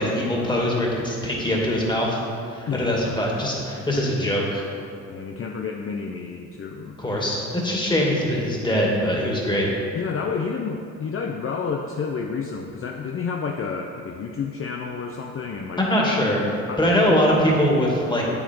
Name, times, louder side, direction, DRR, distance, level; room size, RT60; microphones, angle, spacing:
voice 1, 0.0-2.2 2.5-4.6 7.0-9.7 15.8-18.2, equal, 15° left, -3 dB, 2.3 m, -22 dB
voice 2, 2.7-3.0 5.1-7.0 9.9-15.8 16.7-16.8 17.1-17.3, left 5 dB, 45° left, 2 dB, 0.7 m, -30 dB
8.8 x 8.3 x 4.6 m, 2.5 s
cardioid pair, 90°, 30 cm